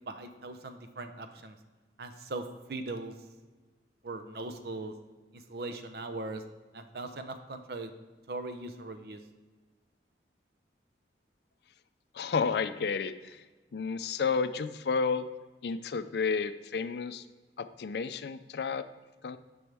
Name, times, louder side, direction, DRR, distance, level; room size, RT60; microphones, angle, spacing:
voice 1, 0.1-1.6 2.0-3.1 4.0-4.9 5.3-6.4 6.7-7.9 8.3-9.2, right 2 dB, 60° right, 7 dB, 0.6 m, -39 dB
voice 2, 12.1-13.4 13.7-15.3 15.6-17.2 17.6-18.9 19.2-19.4, left 5 dB, 65° left, 12 dB, 0.4 m, -31 dB
9.6 x 5.4 x 3.4 m, 1.3 s
head